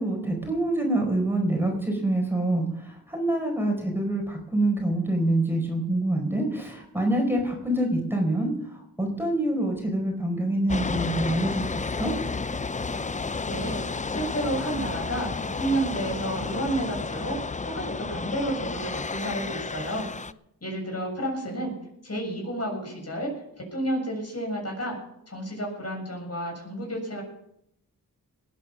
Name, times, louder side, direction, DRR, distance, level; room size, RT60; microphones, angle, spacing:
voice 1, 0.0-12.1, right 1 dB, 5° right, 1 dB, 4.6 m, -26 dB
sound 1, 10.7-20.3, left 4 dB, 20° left, 0.5 m, -31 dB
voice 2, 13.4-13.8 14.1-17.4 17.6-20.1 20.6-21.7 22.0-23.3 23.6-25.0 25.3-27.2, right 1 dB, 45° left, 0 dB, 7.0 m, -31 dB
19.5 x 9.2 x 6.3 m, 0.77 s
cardioid pair, 65°, 36 cm